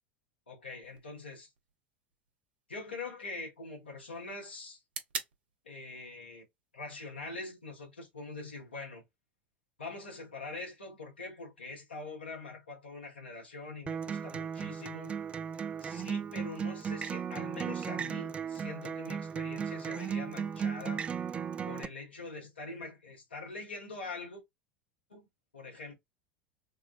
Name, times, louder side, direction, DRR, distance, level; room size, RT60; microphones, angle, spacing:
voice 1, 0.5-1.5 2.7-4.8 5.6-6.4 6.7-9.0 9.8-15.1 15.8-21.0 21.6-24.4 25.1-25.3 25.5-25.9, left 3 dB, 80° left, 1.3 m, -44 dB
sound 1, 0.8-8.8, right 6 dB, 65° right, 0.8 m, -49 dB
Acoustic guitar, 13.9-21.8, right 7 dB, 20° right, 0.3 m, -36 dB
3.6 x 2.2 x 2.5 m
figure-of-eight pair, 75°, 6 cm